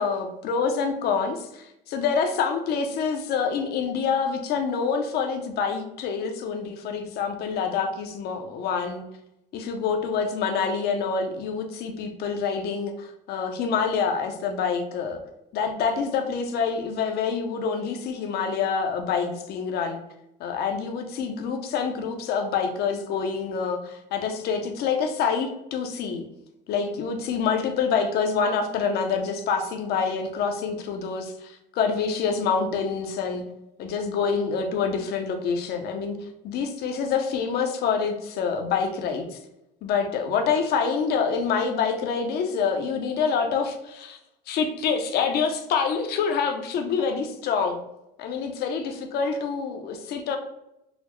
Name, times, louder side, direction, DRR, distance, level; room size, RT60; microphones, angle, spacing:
voice 1, 0.0-9.0 9.5-15.2 15.5-20.0 20.4-26.2 26.7-33.4 33.8-36.2 36.4-39.4 39.8-44.2 44.5-47.8 48.2-50.4, left 6 dB, 70° left, 5 dB, 0.5 m, -26 dB
3.9 x 2.1 x 3.0 m, 0.85 s
cardioid pair, 110°, 17 cm